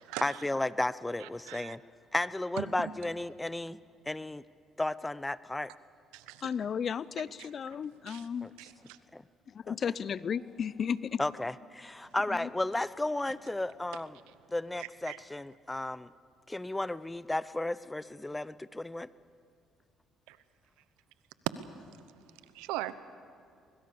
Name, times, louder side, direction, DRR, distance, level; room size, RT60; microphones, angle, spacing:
voice 1, 0.2-1.8 2.1-3.8 4.1-4.4 4.8-5.7 8.4-8.5 9.1-9.2 9.7-9.8 11.2-14.2 14.5-16.1 16.5-19.1, left 2 dB, 15° left, 0.7 m, -33 dB
voice 2, 1.2-1.8 2.6-2.9 6.1-6.4 8.1-8.2 8.6-8.7 15.1-15.2 20.3-20.4 22.5-22.9, right 15 dB, 85° right, 0.9 m, -39 dB
voice 3, 6.4-8.5 9.5-11.2 12.3-12.5, left 7 dB, 50° left, 0.6 m, -34 dB
23.5 x 21.5 x 7.0 m
hypercardioid pair, 60°, 0 cm